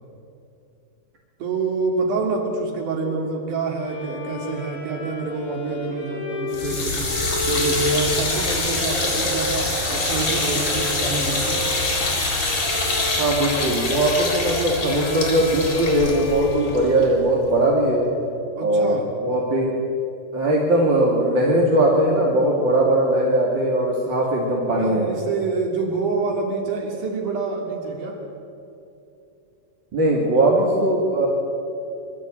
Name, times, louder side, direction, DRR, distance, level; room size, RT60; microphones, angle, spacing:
voice 1, 1.4-7.1 7.4-11.6 18.6-19.1 22.8-22.9 24.8-28.2, right 4 dB, 70° right, 1 dB, 4.0 m, -27 dB
Bowed string instrument, 3.8-17.7, left 2 dB, 5° left, 5.2 m, -33 dB
sound 1, 6.5-17.6, left 2 dB, 45° left, 4.8 m, -25 dB
voice 2, 13.2-18.1 18.6-19.7 20.3-25.1 29.9-31.3, right 1 dB, 40° right, -2 dB, 2.7 m, -20 dB
24.0 x 13.0 x 8.8 m, 2.7 s
omnidirectional pair, 3.7 m